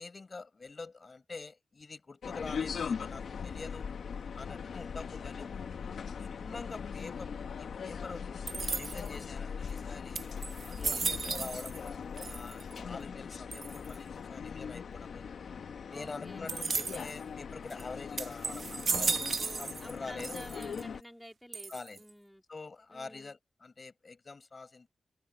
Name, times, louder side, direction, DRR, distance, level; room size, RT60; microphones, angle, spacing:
voice 1, 0.0-3.9 4.3-5.5 6.2-8.3 8.7-10.2 10.6-15.3 15.9-19.2 19.6-20.4 21.7-22.0 22.5-24.9, left 4 dB, 35° left, 5.7 m, -46 dB
sound 1, 2.2-21.0, left 6 dB, 75° left, 1.2 m, -40 dB
sound 2, 8.5-9.2 9.8-9.9 10.1-11.9 12.2-12.8 13.5-14.0 16.5-17.2 17.7-17.8 18.2-19.9 20.2-20.8 21.5-22.1, right 4 dB, 45° right, 1.1 m, -35 dB
voice 2, 10.8-11.1 12.7-13.2 15.9-16.5 19.4-22.4 22.9-23.3, equal, ahead, 2.6 m, -51 dB
open air
wide cardioid pair, 165°, 0 cm